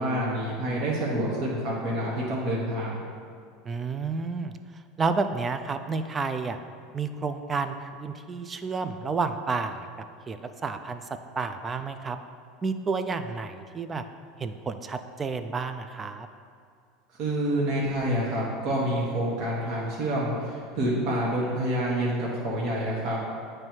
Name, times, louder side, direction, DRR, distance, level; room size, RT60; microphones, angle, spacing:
voice 1, 0.0-3.0 17.2-23.2, right 1 dB, 55° right, -5 dB, 1.4 m, -27 dB
voice 2, 3.7-4.6 5.0-6.6 6.9-9.9 10.3-11.0 11.4-12.2 12.6-14.0 14.4-16.3, right 4 dB, 25° right, 9 dB, 0.4 m, -30 dB
9.0 x 3.3 x 4.5 m, 2.3 s
supercardioid pair, 110°, 0 cm